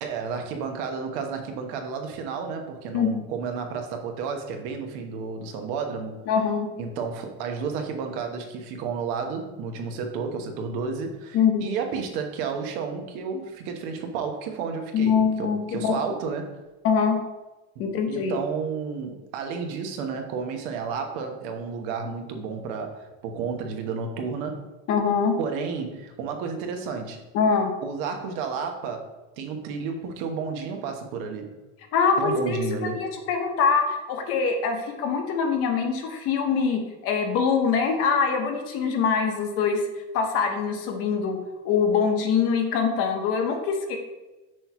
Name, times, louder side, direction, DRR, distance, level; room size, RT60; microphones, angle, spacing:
voice 1, 0.0-6.2 6.8-16.6 18.1-24.7 25.4-27.2 27.8-31.5 32.2-33.0, right 5 dB, 80° right, 4 dB, 1.1 m, -32 dB
voice 2, 6.3-6.7 11.3-11.7 14.9-16.0 16.8-17.2 17.8-18.3 24.9-25.3 27.3-27.7 31.9-39.8 40.1-41.4 41.6-44.0, left 6 dB, 50° left, 4 dB, 1.0 m, -23 dB
6.2 x 3.0 x 5.8 m, 1.1 s
cardioid pair, 165°, 29 cm